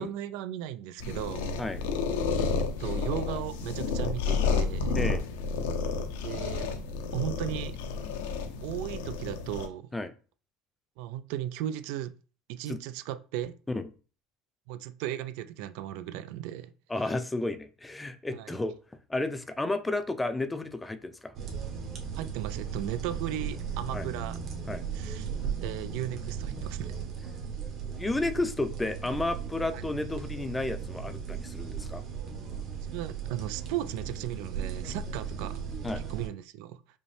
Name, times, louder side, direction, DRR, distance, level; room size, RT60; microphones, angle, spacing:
voice 1, 0.0-1.5 2.6-5.0 6.2-6.8 7.1-7.8 8.6-9.9 11.0-12.1 12.5-13.5 14.7-16.7 18.3-18.5 22.1-24.4 24.9-25.3 25.6-26.9 29.7-29.8 32.8-35.6 36.0-36.8, right 12 dB, 75° right, 0.3 m, -36 dB
sound 1, 1.0-9.7, left 5 dB, 85° left, 0.6 m, -31 dB
voice 2, 16.9-18.8 19.1-21.3 23.9-24.1 24.7-24.8 27.8-32.0 35.8-36.0, left 2 dB, 10° left, 0.4 m, -32 dB
sound 2, 21.4-36.3, right 6 dB, 50° right, 1.2 m, -37 dB
5.2 x 2.1 x 3.2 m
supercardioid pair, 100°, 0 cm